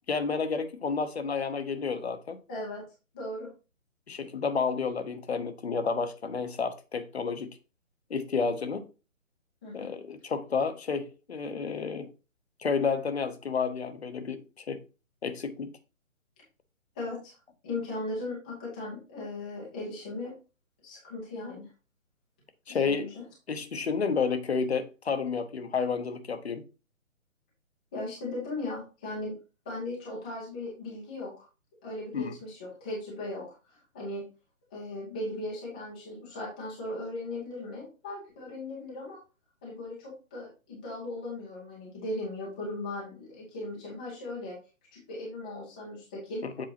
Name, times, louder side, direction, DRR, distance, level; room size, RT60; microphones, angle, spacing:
voice 1, 0.1-2.4 4.1-7.6 8.1-8.9 9.7-12.1 12.6-14.8 15.2-15.7 22.7-23.1 23.5-26.6 32.1-32.3 46.4-46.7, left 5 dB, 50° left, 0.9 m, -30 dB
voice 2, 2.5-2.8 3.1-3.5 9.6-9.9 16.9-17.4 17.6-20.3 20.8-21.7 22.7-23.2 27.9-29.4 29.6-31.5 31.8-34.2 34.7-39.2 39.6-44.6 44.9-46.7, left 2 dB, 5° left, 0.6 m, -38 dB
7.6 x 4.7 x 2.9 m
figure-of-eight pair, 145°, 40 cm